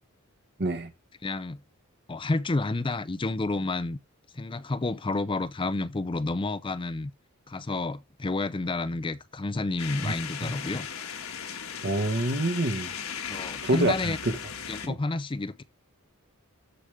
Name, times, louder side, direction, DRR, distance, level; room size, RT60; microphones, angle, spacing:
voice 1, 0.6-0.9 10.0-10.1 10.4-10.6 11.8-12.9 13.6-14.4 14.8-15.0, right 1 dB, 50° right, 1.5 m, -27 dB
voice 2, 1.2-1.6 2.1-4.0 4.3-7.1 7.5-10.9 13.3-14.2 14.7-15.6, left 2 dB, 25° left, 0.5 m, -30 dB
sound 1, 9.8-14.9, left 7 dB, 70° left, 1.7 m, -37 dB
13.5 x 5.1 x 3.5 m
head